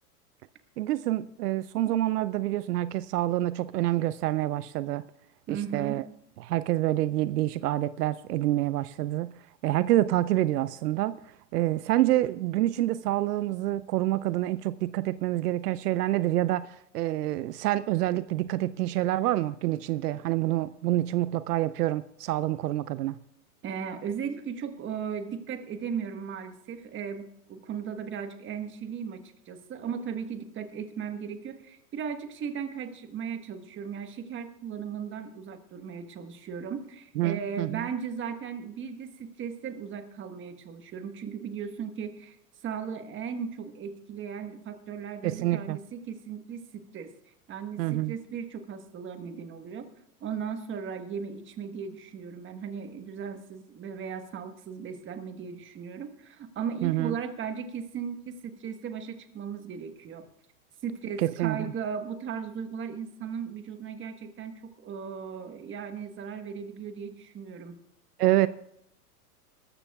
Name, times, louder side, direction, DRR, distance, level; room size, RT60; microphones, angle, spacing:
voice 1, 0.8-5.0 5.5-6.0 6.4-9.3 9.6-23.2 37.2-37.9 45.2-45.8 47.8-48.1 56.8-57.2 61.2-61.7 68.2-68.5, right 15 dB, 75° right, 0.6 m, -27 dB
voice 2, 5.5-6.0 23.6-42.4 42.6-47.1 47.5-49.9 50.2-60.3 60.8-67.8, right 7 dB, 25° right, 1.3 m, -37 dB
19.5 x 14.0 x 2.3 m
hypercardioid pair, 115°, 48 cm